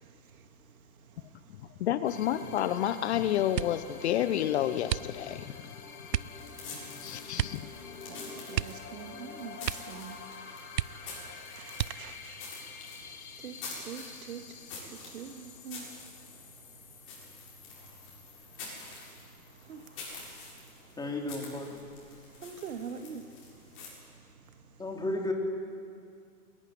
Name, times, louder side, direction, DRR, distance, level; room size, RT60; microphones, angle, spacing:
voice 1, 0.0-1.8 5.6-5.9 6.1-21.0 22.3-24.8, right 6 dB, 55° right, 7 dB, 2.3 m, -48 dB
voice 2, 1.5-5.8 7.0-7.7, left 11 dB, 40° left, 13 dB, 0.9 m, -30 dB
sound 1, 2.1-20.5, left 6 dB, 60° left, 3.0 m, -48 dB
sound 2, 3.5-3.9 4.8-5.5 6.1-6.4 7.3-7.7 7.9-8.0 8.5-9.3 9.6-10.0 10.3-10.4 10.7-11.3 11.7-12.3 13.0-13.6 14.0-14.4, right 10 dB, 80° right, 0.7 m, -34 dB
sound 3, 6.3-23.9, left 3 dB, 25° left, 8.0 m, -47 dB
voice 3, 21.0-21.8 24.8-25.3, left 2 dB, 10° left, 1 dB, 3.2 m, -33 dB
21.0 x 20.0 x 10.0 m, 2.3 s
figure-of-eight pair, 115°, 49 cm